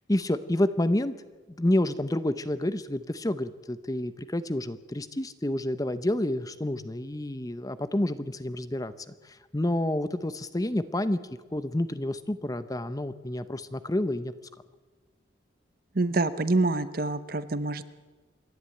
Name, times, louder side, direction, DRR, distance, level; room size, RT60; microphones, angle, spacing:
voice 1, 0.1-1.1 1.5-11.2 11.5-14.3, left 1 dB, 20° left, 13 dB, 0.7 m, -29 dB
voice 2, 15.9-17.8, right 2 dB, 50° right, 14 dB, 0.9 m, -26 dB
27.0 x 11.5 x 9.0 m, 1.3 s
head